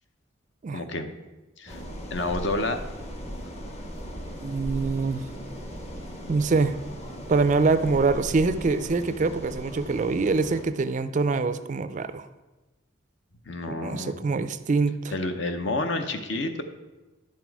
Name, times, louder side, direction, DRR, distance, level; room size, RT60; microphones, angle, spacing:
voice 1, 0.7-1.1 1.6-1.8 2.1-2.8 13.5-14.3 15.1-16.6, left 2 dB, 60° left, 7 dB, 0.8 m, -29 dB
sound 1, 1.7-10.6, equal, 35° left, 1.0 m, -38 dB
voice 2, 4.4-5.2 6.3-6.8 7.3-12.2 13.8-15.1, right 4 dB, 35° right, 12 dB, 0.3 m, -24 dB
10.5 x 5.9 x 4.6 m, 1.1 s
head